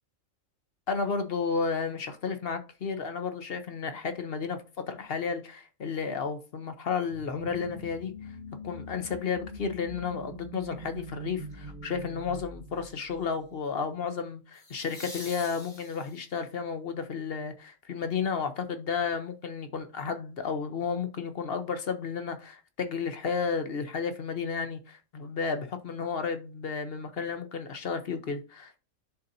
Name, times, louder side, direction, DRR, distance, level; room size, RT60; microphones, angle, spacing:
voice 1, 0.9-8.1 8.6-28.8, left 5 dB, 50° left, 1.0 m, -32 dB
sound 1, 7.1-13.5, equal, 35° right, 1.3 m, -43 dB
sound 2, 11.5-11.9 14.5-16.4 19.3-19.4, left 1 dB, 90° left, 4.5 m, -45 dB
10.5 x 4.0 x 2.7 m
omnidirectional pair, 1.3 m